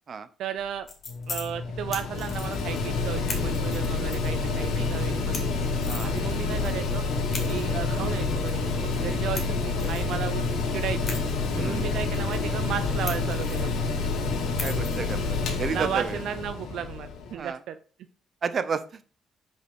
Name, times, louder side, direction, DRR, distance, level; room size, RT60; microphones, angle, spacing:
voice 1, 0.4-0.9 1.3-5.5 6.0-7.0 7.5-10.4 10.7-11.2 11.6-13.7 15.7-17.7, right 9 dB, 75° right, 10 dB, 0.5 m, -34 dB
sound 1, 0.6-17.5, left 4 dB, 45° left, 2.4 m, -43 dB
Mechanical fan, 1.1-17.4, left 4 dB, 80° left, 1.7 m, -28 dB
voice 2, 5.8-6.2 11.5-11.8 14.3-15.2 15.6-16.2 17.3-17.6 18.4-19.0, right 5 dB, 45° right, 12 dB, 0.8 m, -31 dB
5.2 x 5.0 x 6.3 m, 0.39 s
cardioid pair, 90°, 0 cm